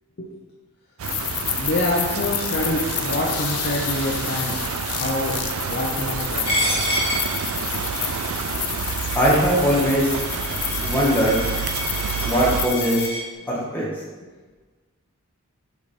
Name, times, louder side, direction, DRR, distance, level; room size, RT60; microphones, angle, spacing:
sound 1, 1.0-13.1, left 12 dB, 85° left, 0.5 m, -30 dB
sound 2, 1.0-12.7, right 7 dB, 75° right, 0.3 m, -29 dB
voice 1, 1.6-4.5 5.0-5.4 5.7-6.6, left 1 dB, 45° left, -3 dB, 0.9 m, -26 dB
Coin (dropping), 6.5-13.2, left 1 dB, 25° left, 1.7 m, -29 dB
voice 2, 9.1-10.2 10.8-11.4 12.2-13.0 13.5-13.8, equal, 10° left, -6 dB, 1.6 m, -20 dB
7.0 x 4.8 x 4.4 m, 1.3 s
head